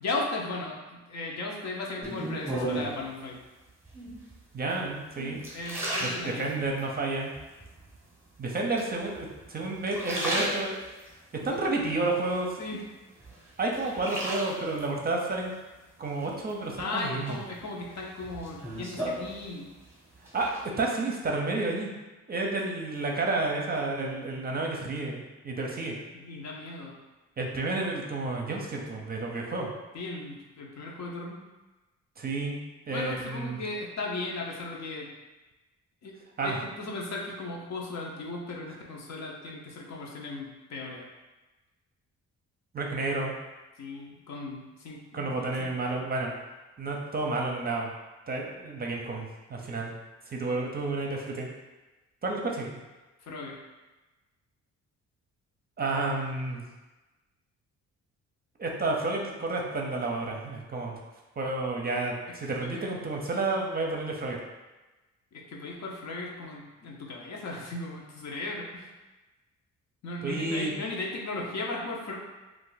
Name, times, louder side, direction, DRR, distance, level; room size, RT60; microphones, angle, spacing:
voice 1, 0.0-3.4 5.5-6.6 11.5-11.6 12.6-12.8 16.8-19.7 25.8-26.9 29.9-31.4 32.9-35.1 36.0-36.2 36.4-41.1 43.8-45.7 53.2-53.6 62.6-62.8 65.3-68.9 70.0-72.1, left 2 dB, 60° left, -1 dB, 0.8 m, -36 dB
sound 1, 2.0-3.1 3.9-4.4 4.9-6.9 7.4-8.0 8.8-9.4 9.8-11.1 11.6-12.8 13.2-14.8 16.2-16.8 17.3-19.9 20.1-20.6, right 1 dB, 10° right, 0.9 m, -35 dB
voice 2, 4.5-5.4 6.0-7.3 8.4-10.8 11.4-12.5 13.6-15.5 16.0-17.4 20.3-21.9 22.3-26.0 27.4-29.7 32.2-32.6 32.9-33.6 36.4-36.6 42.7-43.3 45.1-46.3 46.8-47.9 48.3-49.9 50.3-51.5 52.2-52.8 55.8-56.6 58.6-61.0 61.4-64.4 70.2-70.7, right 2 dB, 30° right, 0 dB, 0.6 m, -30 dB
2.5 x 2.4 x 3.9 m, 1.1 s
cardioid pair, 90°, 30 cm